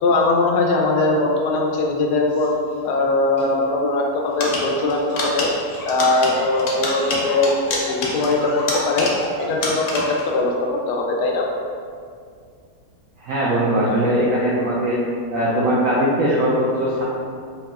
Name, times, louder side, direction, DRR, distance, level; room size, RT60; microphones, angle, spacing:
voice 1, 0.0-2.5 2.8-5.5 5.9-9.1 9.5-10.5 10.9-11.4, left 3 dB, 90° left, 0 dB, 1.2 m, -20 dB
Laughter, 2.3-2.8 3.4-3.5 4.7-10.3, left 1 dB, 35° left, 0.7 m, -34 dB
sound 1, 4.4-9.4 9.6-10.3, left 2 dB, 65° left, 0.8 m, -27 dB
voice 2, 13.2-15.0 15.3-17.0, right 1 dB, 70° right, -7 dB, 0.9 m, -20 dB
4.8 x 2.7 x 2.3 m, 2.2 s
omnidirectional pair, 1.7 m